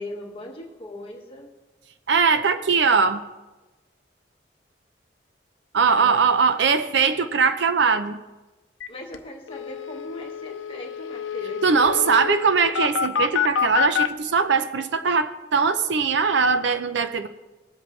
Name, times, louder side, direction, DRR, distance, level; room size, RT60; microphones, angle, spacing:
voice 1, 0.0-1.5 5.9-6.2 8.9-12.0, left 1 dB, 30° left, -1 dB, 1.6 m, -39 dB
voice 2, 2.1-3.2 5.7-8.2 11.6-17.3, right 5 dB, 65° right, 10 dB, 0.6 m, -21 dB
sound 1, 8.8-8.9 9.1-9.2 9.5-14.1, left 7 dB, 80° left, 0.6 m, -27 dB
19.0 x 8.0 x 3.2 m, 1.1 s
head